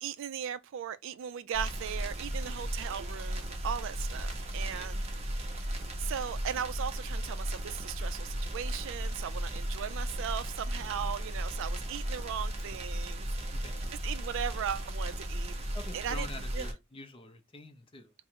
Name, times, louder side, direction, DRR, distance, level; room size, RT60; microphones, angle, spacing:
voice 1, 0.0-5.0 6.0-13.6 13.9-15.6 15.9-16.3 16.5-16.7, right 8 dB, 60° right, 0.3 m, -38 dB
sound 1, 1.5-16.7, right 1 dB, 30° right, 0.7 m, -35 dB
voice 2, 2.3-2.7 4.7-5.1 10.8-11.1 13.5-13.9 15.7-18.1, left 2 dB, 25° left, 0.5 m, -48 dB
3.6 x 2.0 x 4.3 m
head